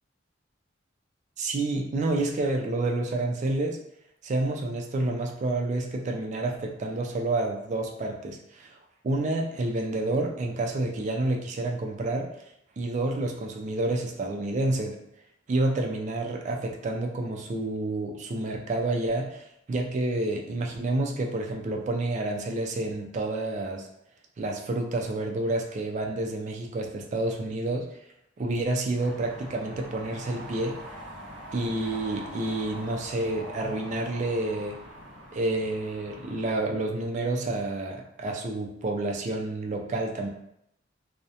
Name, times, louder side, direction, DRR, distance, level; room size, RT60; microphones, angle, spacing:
voice 1, 1.4-3.8 4.2-8.8 9.0-12.3 12.8-15.0 15.5-23.9 24.4-28.0 28.4-30.8 31.5-34.8 35.3-40.3, right 2 dB, 40° right, 2 dB, 0.3 m, -29 dB
sound 1, 28.9-36.7, equal, 10° right, 0.9 m, -43 dB
2.3 x 2.0 x 2.7 m, 0.78 s
head